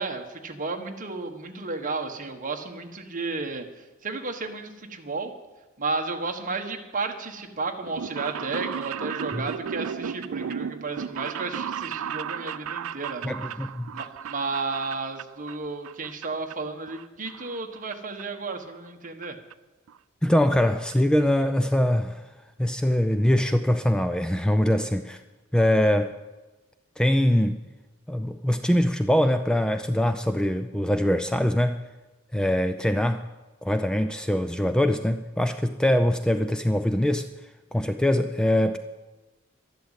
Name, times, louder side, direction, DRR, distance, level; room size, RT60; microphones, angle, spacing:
voice 1, 0.0-5.3 5.8-13.3 13.9-19.4, right 3 dB, 40° right, 4 dB, 1.5 m, -33 dB
sound 1, 7.8-15.6 15.8-16.5 16.9-17.9 18.2-18.3 19.2-19.3 19.5-19.6 19.9-20.0 20.3-20.5 20.9-21.0 21.2-21.3, right 7 dB, 85° right, 0.4 m, -35 dB
voice 2, 13.2-13.9 20.2-22.3 22.6-25.2 25.5-26.2 27.0-27.6 28.1-31.8 32.3-33.3 33.6-37.3 37.7-38.8, left 1 dB, 5° left, 9 dB, 0.4 m, -23 dB
12.5 x 11.5 x 8.2 m, 1.2 s
head